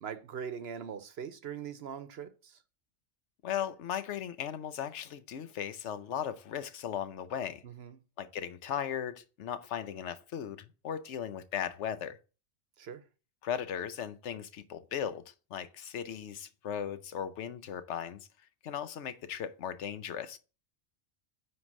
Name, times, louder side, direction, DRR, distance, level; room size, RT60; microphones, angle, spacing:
voice 1, 0.0-2.6 7.6-8.0 12.8-13.0, right 7 dB, 65° right, 0.9 m, -41 dB
voice 2, 3.4-7.6 8.2-12.2 13.4-18.2 18.6-20.4, left 9 dB, 80° left, 1.0 m, -37 dB
9.5 x 3.3 x 6.0 m
omnidirectional pair, 1.2 m